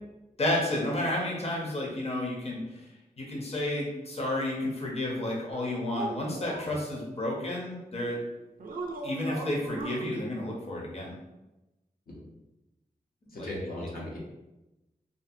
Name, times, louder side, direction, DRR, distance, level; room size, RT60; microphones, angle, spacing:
voice 1, 0.4-2.8 3.2-8.2 9.0-11.2 13.4-13.9, left 1 dB, 45° left, -2 dB, 0.7 m, -31 dB
sound 1, 5.5-6.8 8.6-10.1, right 2 dB, 70° right, 0.4 m, -38 dB
voice 2, 13.3-14.2, left 1 dB, 80° left, -4 dB, 0.7 m, -37 dB
2.6 x 2.4 x 2.6 m, 1.0 s
wide cardioid pair, 80°, 15 cm